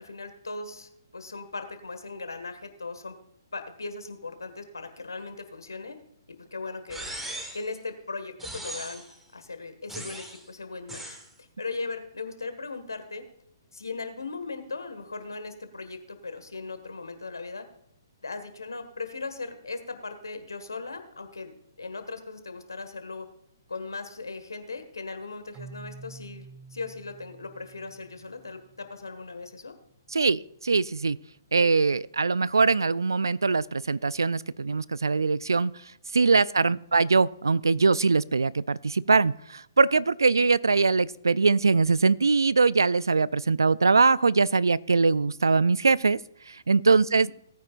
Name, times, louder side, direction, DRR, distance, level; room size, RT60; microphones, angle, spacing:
voice 1, 0.0-3.1 3.5-6.0 6.3-7.1 7.5-9.0 9.3-11.0 11.4-13.2 13.7-17.6 18.2-23.3 23.7-29.7 36.6-36.7 47.1-47.3, left 3 dB, 80° left, 9 dB, 1.6 m, -38 dB
sound 1, 6.9-7.7 8.4-9.2 9.9-10.4 10.9-11.3, right 1 dB, 5° right, 1.5 m, -38 dB
Keyboard (musical), 25.5-29.2, right 4 dB, 20° right, 1.1 m, -48 dB
voice 2, 30.1-31.2 31.5-35.7 36.1-46.2 46.5-47.3, right 4 dB, 80° right, 21 dB, 0.3 m, -22 dB
18.5 x 9.3 x 2.5 m, 0.74 s
figure-of-eight pair, 130°, 2 cm